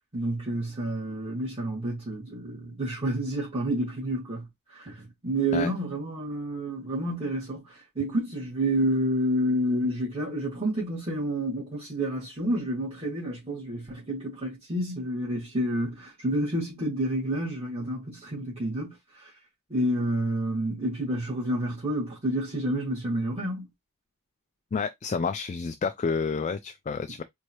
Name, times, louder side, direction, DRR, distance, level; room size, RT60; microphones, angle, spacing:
voice 1, 0.1-19.3 19.7-23.6, right 1 dB, 25° right, 2.1 m, -29 dB
voice 2, 24.7-27.2, left 5 dB, 30° left, 0.3 m, -29 dB
4.6 x 2.7 x 3.0 m
head